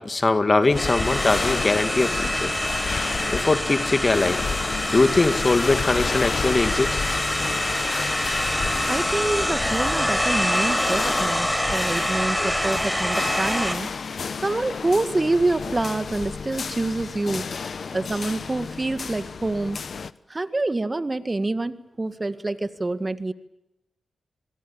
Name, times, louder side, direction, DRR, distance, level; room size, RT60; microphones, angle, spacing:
voice 1, 0.0-2.5 3.3-4.4 4.9-7.0 12.4-12.5, left 3 dB, 40° left, 8 dB, 2.1 m, -21 dB
sound 1, 0.7-20.1, left 5 dB, 65° left, 0.9 m, -31 dB
sound 2, 0.8-13.8, equal, 5° left, 5.3 m, -26 dB
voice 2, 8.9-13.9 14.4-17.5 17.9-19.8 20.3-23.3, right 2 dB, 30° right, 11 dB, 1.8 m, -26 dB
27.5 x 22.0 x 8.7 m, 0.93 s
supercardioid pair, 45°, 0 cm